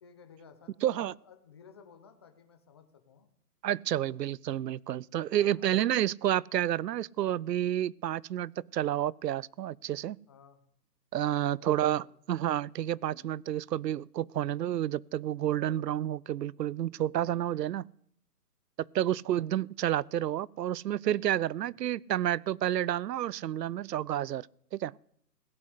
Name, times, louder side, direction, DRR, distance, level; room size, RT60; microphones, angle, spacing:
voice 1, 0.0-3.3 5.3-5.8 10.3-10.6 11.2-12.1 19.0-19.3 21.7-21.8, left 6 dB, 15° left, 0.8 m, -56 dB
voice 2, 0.8-1.1 3.6-10.2 11.1-17.8 18.8-24.5 24.7-24.9, right 12 dB, 75° right, 0.6 m, -30 dB
16.5 x 7.6 x 9.7 m
hypercardioid pair, 165°, 49 cm